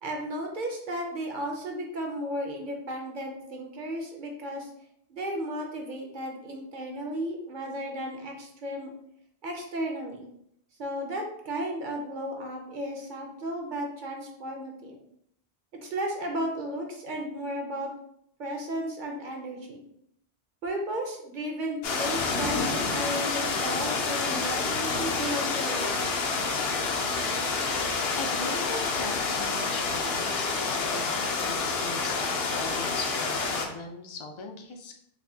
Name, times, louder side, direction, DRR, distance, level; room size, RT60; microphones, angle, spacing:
voice 1, 0.0-4.7 5.1-8.9 9.4-10.3 10.8-15.0 15.8-17.9 18.4-19.8 20.6-26.1, equal, 55° right, 2 dB, 0.8 m, -34 dB
sound 1, 21.8-33.7, left 4 dB, 70° left, 0.8 m, -28 dB
voice 2, 28.2-35.0, left 3 dB, 45° left, 2 dB, 0.4 m, -39 dB
4.1 x 2.6 x 2.7 m, 0.72 s
omnidirectional pair, 1.1 m